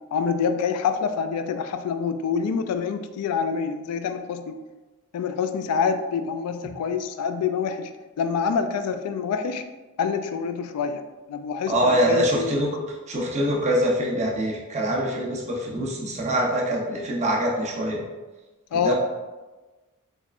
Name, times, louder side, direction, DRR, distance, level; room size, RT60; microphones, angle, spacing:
voice 1, 0.1-4.6 5.1-9.6 10.0-11.0 11.3-12.7 18.7-18.9, left 6 dB, 80° left, 9 dB, 0.3 m, -26 dB
voice 2, 11.7-12.8 13.1-18.0 18.7-18.9, equal, 30° right, -2 dB, 0.7 m, -24 dB
3.5 x 3.1 x 2.4 m, 1.2 s
head